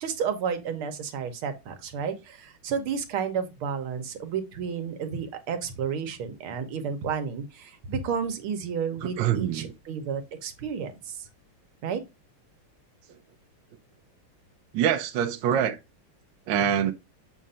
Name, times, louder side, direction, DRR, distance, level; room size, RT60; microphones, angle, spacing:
voice 1, 0.0-11.2 11.8-12.0, right 6 dB, 90° right, 1.9 m, -31 dB
voice 2, 9.0-9.7 14.7-15.8 16.5-16.9, right 9 dB, 70° right, 1.4 m, -25 dB
7.3 x 2.5 x 5.5 m
omnidirectional pair, 2.3 m